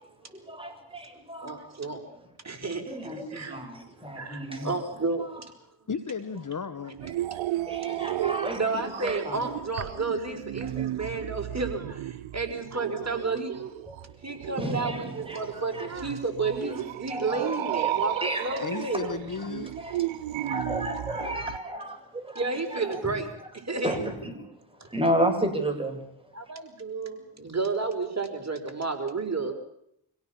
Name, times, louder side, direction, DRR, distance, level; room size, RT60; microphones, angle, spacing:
voice 1, 0.0-1.8 2.9-4.9 5.2-5.3 7.3-9.5 10.6-11.1 13.9-14.0 14.4-15.9 16.6-16.8 17.1-19.5 19.8-23.5 23.8-26.0, right 1 dB, 10° right, 4 dB, 7.9 m, -33 dB
voice 2, 1.4-2.0 2.4-2.8 3.3-3.5 4.2-5.3 6.9-7.2 8.5-12.0 12.3-13.7 14.2-19.2 22.4-23.3 23.7-24.0 26.3-29.5, right 3 dB, 35° right, 5 dB, 5.1 m, -31 dB
voice 3, 5.9-7.0 17.6-17.7 18.6-19.7, left 5 dB, 40° left, 11 dB, 1.6 m, -34 dB
sound 1, 7.0-21.6, right 14 dB, 90° right, 0.8 m, -34 dB
26.5 x 17.0 x 7.3 m, 0.74 s
cardioid pair, 60°, 45 cm